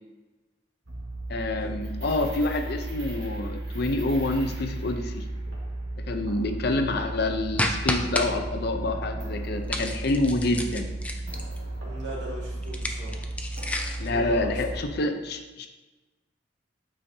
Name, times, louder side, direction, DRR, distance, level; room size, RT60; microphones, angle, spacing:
sound 1, 0.9-14.8, right 2 dB, 85° right, 1.7 m, -34 dB
voice 1, 1.3-5.3 6.1-10.9 14.0-15.7, left 2 dB, 60° left, 6 dB, 0.6 m, -27 dB
sound 2, 7.6-8.3 9.7-11.6 12.6-14.1, left 1 dB, 10° left, 0.5 m, -30 dB
voice 2, 11.8-13.3 14.0-14.9, right 1 dB, 65° right, -5 dB, 2.1 m, -39 dB
8.6 x 5.0 x 2.8 m, 1.2 s
head